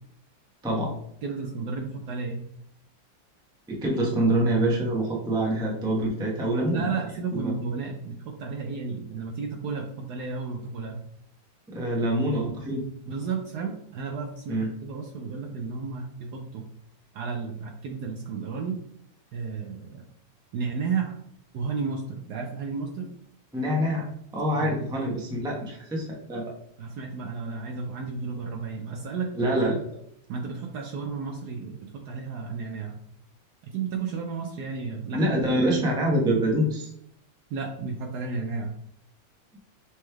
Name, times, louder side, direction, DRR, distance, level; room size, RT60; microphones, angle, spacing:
voice 1, 0.6-0.9 3.7-6.9 7.3-7.5 11.7-12.8 14.5-14.7 23.5-24.1 24.3-26.5 29.4-29.8 35.1-36.9, right 1 dB, 5° right, -3 dB, 0.5 m, -25 dB
voice 2, 1.2-2.4 6.7-11.0 13.1-16.6 17.1-18.8 19.3-20.0 20.5-21.2 21.5-23.1 24.5-24.8 26.8-29.5 30.3-33.0 33.7-35.2 37.5-38.7, right 5 dB, 70° right, 2 dB, 1.0 m, -33 dB
6.1 x 3.2 x 2.3 m, 0.71 s
omnidirectional pair, 2.1 m